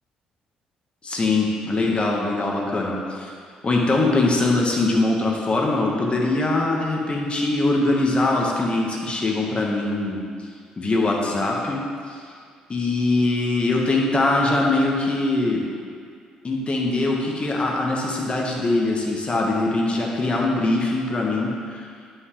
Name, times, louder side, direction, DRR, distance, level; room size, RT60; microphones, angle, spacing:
voice 1, 1.0-3.3 3.6-10.2 10.8-11.8 12.7-15.6 16.4-21.8, left 2 dB, 35° left, -1 dB, 1.6 m, -22 dB
9.1 x 5.9 x 3.4 m, 2.2 s
hypercardioid pair, 55°, 3 cm